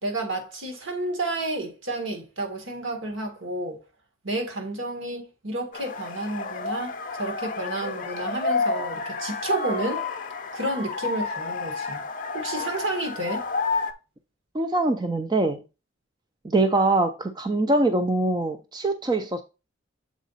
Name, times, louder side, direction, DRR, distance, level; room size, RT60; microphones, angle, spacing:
voice 1, 0.0-3.8 4.2-10.1 10.5-12.0 12.3-13.5, right 2 dB, 70° right, 1.8 m, -30 dB
sound 1, 5.7-13.9, left 4 dB, 40° left, 0.5 m, -30 dB
voice 2, 14.5-15.6 16.4-19.4, right 2 dB, 20° right, 0.3 m, -23 dB
7.3 x 4.0 x 4.0 m
head